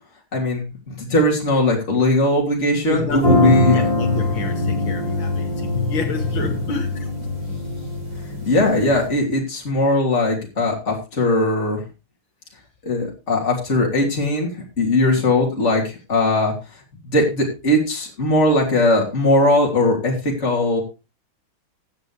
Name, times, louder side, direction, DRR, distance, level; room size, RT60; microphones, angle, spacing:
voice 1, 0.3-3.9 8.5-11.8 12.8-14.5 14.8-16.5 17.1-20.8, left 1 dB, 35° left, 3.4 m, -19 dB
voice 2, 2.9-7.6 8.1-8.2, left 5 dB, 70° left, 3.0 m, -27 dB
sound 1, 3.1-9.0, left 2 dB, 40° right, 7.0 m, -23 dB
15.5 x 9.4 x 3.3 m
omnidirectional pair, 2.3 m